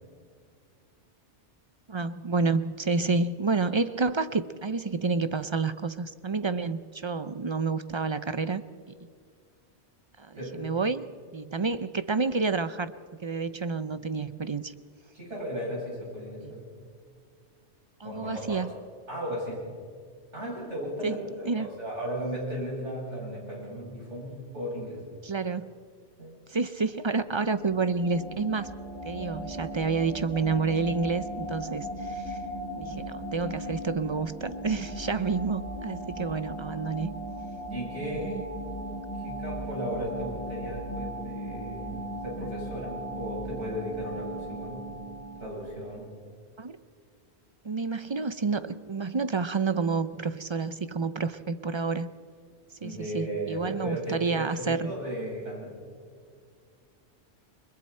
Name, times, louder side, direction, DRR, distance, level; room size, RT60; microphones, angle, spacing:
voice 1, 1.9-8.6 10.2-11.0 11.3-12.9 13.2-14.7 16.4-16.5 18.0-18.7 21.0-21.2 21.4-21.7 25.2-25.7 26.5-28.7 29.0-32.4 32.7-37.1 38.0-38.4 46.6-46.8 47.6-52.1 52.8-54.9, right 4 dB, 40° right, 13 dB, 0.4 m, -29 dB
voice 2, 15.1-16.7 18.0-18.6 19.1-19.6 20.3-25.0 26.2-26.3 37.7-38.4 39.2-44.8 45.4-46.1 52.8-55.7, equal, 85° right, -5 dB, 8.4 m, -35 dB
sound 1, 26.9-45.8, equal, 10° left, 5.8 m, -38 dB
29.0 x 21.5 x 4.4 m, 2.1 s
omnidirectional pair, 1.2 m